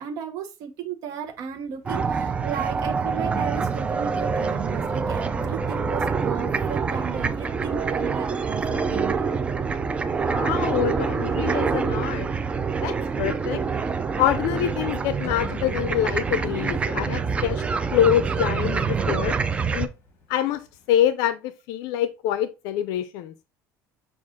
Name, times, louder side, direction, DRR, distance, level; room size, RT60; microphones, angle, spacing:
voice 1, 0.0-9.3, right 8 dB, 60° right, 0.7 m, -35 dB
sound 1, 1.2-21.1, left 4 dB, 35° left, 1.5 m, -48 dB
sound 2, 1.9-19.9, right 5 dB, 20° right, 0.3 m, -26 dB
voice 2, 10.3-12.3 12.8-13.6 14.2-17.6 17.9-19.4 19.7-19.9 20.3-20.6 20.9-23.3, left 11 dB, 75° left, 0.4 m, -25 dB
6.2 x 2.4 x 3.6 m
cardioid pair, 140°, 7 cm